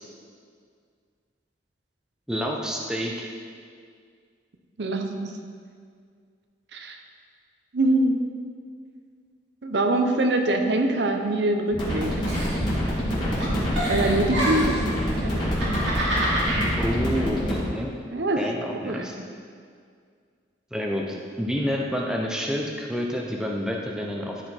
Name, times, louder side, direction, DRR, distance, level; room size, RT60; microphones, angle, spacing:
voice 1, 2.3-3.3 16.8-17.9 18.4-19.2 20.7-24.5, equal, 5° right, -1 dB, 0.7 m, -28 dB
voice 2, 4.8-5.3 6.7-7.0 7.7-8.2 9.6-12.1 13.9-15.4 18.1-18.4 18.8-19.0, right 2 dB, 65° right, 4 dB, 0.8 m, -24 dB
sound 1, 11.7-17.6, equal, 25° left, 2.4 m, -26 dB
Giggle, 12.3-13.1 13.4-14.9 15.4-16.7, equal, 85° right, 2.4 m, -27 dB
13.5 x 4.9 x 4.4 m, 2.1 s
head